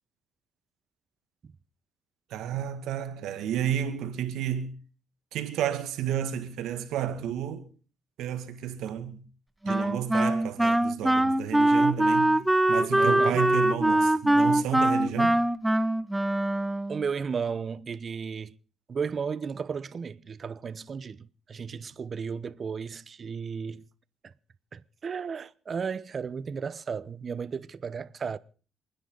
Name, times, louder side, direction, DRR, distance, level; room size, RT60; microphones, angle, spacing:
voice 1, 2.3-4.7 5.3-7.7 8.2-9.2 9.6-12.4 12.7-15.4 21.7-21.8, right 9 dB, 85° right, 2.1 m, -31 dB
Wind instrument woodwind instrument, 9.7-17.1, right 1 dB, 10° right, 0.7 m, -23 dB
voice 2, 13.0-13.4 16.9-18.6 18.9-23.9 24.2-24.3 24.7-28.4, right 6 dB, 45° right, 0.8 m, -34 dB
28.0 x 10.0 x 3.9 m
cardioid pair, 90°, 0 cm